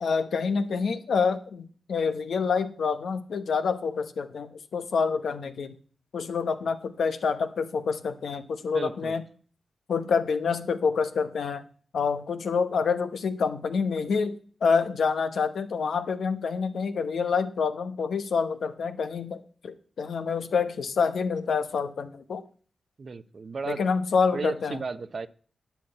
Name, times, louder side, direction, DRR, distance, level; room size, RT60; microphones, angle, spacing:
voice 1, 0.0-5.8 6.1-9.2 9.9-11.6 11.9-22.4 23.6-24.8, left 5 dB, 80° left, 1.0 m, -27 dB
voice 2, 8.7-9.2 23.0-23.8 24.3-25.3, right 4 dB, 60° right, 0.7 m, -34 dB
10.5 x 5.8 x 8.1 m
cardioid pair, 50°, 0 cm